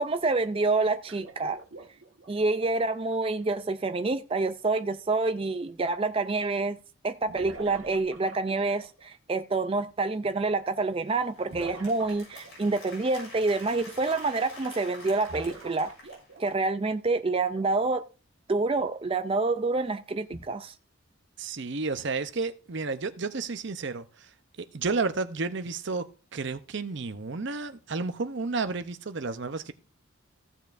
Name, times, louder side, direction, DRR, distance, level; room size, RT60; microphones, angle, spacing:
voice 1, 0.0-1.6 2.3-6.8 7.0-15.9 16.4-18.0 18.5-20.7, right 3 dB, 25° right, 0.4 m, -27 dB
sound 1, 1.1-3.7 5.7-5.8 7.3-9.0 11.5-12.8 15.2-16.7 17.5-17.7 18.8-19.0 20.3-20.4, right 2 dB, 75° right, 1.6 m, -45 dB
Applause, 10.8-16.6, left 2 dB, 70° left, 6.3 m, -48 dB
voice 2, 21.4-24.3 24.6-26.1 26.3-29.7, right 4 dB, 55° right, 0.7 m, -31 dB
15.5 x 7.2 x 2.6 m
head